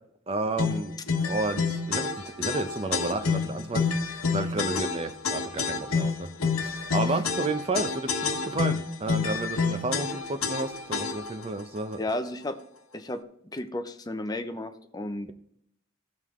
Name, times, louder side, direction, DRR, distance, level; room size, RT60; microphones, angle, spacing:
voice 1, 0.3-0.9 1.2-2.1 2.4-6.3 6.6-12.0, right 2 dB, 30° right, 8 dB, 0.7 m, -31 dB
sound 1, 0.6-11.4, left 5 dB, 85° left, 1.0 m, -29 dB
voice 2, 12.0-12.6 12.9-13.2 13.5-15.3, left 1 dB, 20° left, 8 dB, 0.7 m, -33 dB
15.5 x 5.7 x 3.7 m, 0.71 s
head